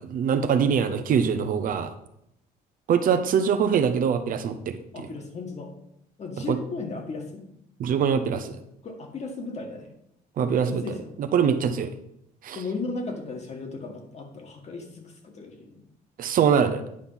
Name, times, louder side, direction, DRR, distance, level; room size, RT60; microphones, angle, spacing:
voice 1, 0.0-1.9 2.9-5.1 6.5-6.6 7.8-8.6 10.4-10.8 11.2-11.9 12.4-12.6 16.2-16.8, right 7 dB, 55° right, 9 dB, 0.8 m, -23 dB
voice 2, 4.9-5.7 6.2-7.4 8.8-9.9 10.4-11.0 12.6-15.8, left 3 dB, 40° left, 4 dB, 1.8 m, -35 dB
9.7 x 4.4 x 5.7 m, 0.78 s
cardioid pair, 110°, 17 cm